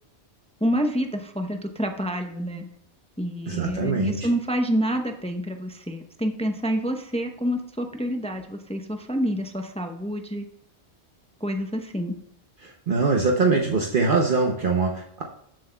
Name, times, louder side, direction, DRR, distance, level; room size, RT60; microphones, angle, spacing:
voice 1, 0.6-2.6 3.2-10.4 11.4-12.2, equal, 5° left, 5 dB, 0.5 m, -28 dB
voice 2, 3.5-4.2 12.6-15.2, right 4 dB, 55° right, 1 dB, 0.9 m, -23 dB
13.0 x 7.6 x 2.2 m, 0.70 s
omnidirectional pair, 1.1 m